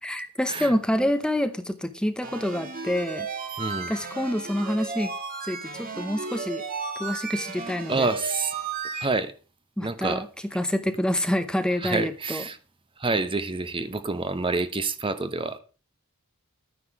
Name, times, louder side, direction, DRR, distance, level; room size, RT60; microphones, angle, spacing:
voice 1, 0.0-3.3 3.9-5.1 5.4-6.6 7.0-8.1 9.8-10.3 10.5-12.4, left 1 dB, 5° left, 0.8 m, -27 dB
sound 1, 2.2-9.0, right 4 dB, 40° right, 2.4 m, -34 dB
voice 2, 3.6-3.9 7.9-8.5 8.9-9.3 9.8-10.3 11.8-12.6 13.0-15.6, right 3 dB, 25° right, 0.9 m, -28 dB
12.0 x 9.8 x 4.8 m
head